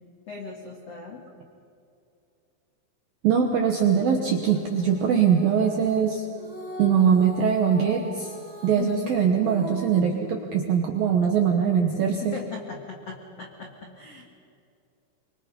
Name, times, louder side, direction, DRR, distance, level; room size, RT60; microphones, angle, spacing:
voice 1, 0.3-1.2 8.7-9.1 12.2-14.2, left 5 dB, 70° left, 1 dB, 1.5 m, -38 dB
voice 2, 3.2-6.3 6.8-8.3 8.6-12.4, right 7 dB, 75° right, 3 dB, 2.1 m, -22 dB
Female singing, 4.4-10.9, right 1 dB, 15° left, 1.4 m, -40 dB
24.5 x 24.5 x 5.3 m, 2.5 s
omnidirectional pair, 5.9 m